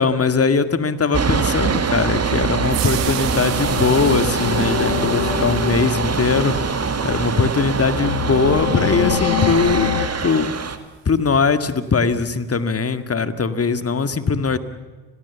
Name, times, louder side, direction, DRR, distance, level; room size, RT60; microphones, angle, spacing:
voice 1, 0.0-6.6 7.0-9.9 10.2-10.5 11.1-14.6, left 4 dB, 30° left, 12 dB, 2.1 m, -20 dB
sound 1, 1.1-10.8, right 5 dB, 30° right, 2.4 m, -23 dB
sound 2, 1.2-9.5, right 17 dB, 65° right, 1.3 m, -37 dB
sound 3, 2.7-10.1, left 14 dB, 80° left, 1.2 m, -27 dB
30.0 x 21.5 x 7.2 m, 1.4 s
hypercardioid pair, 60°, 47 cm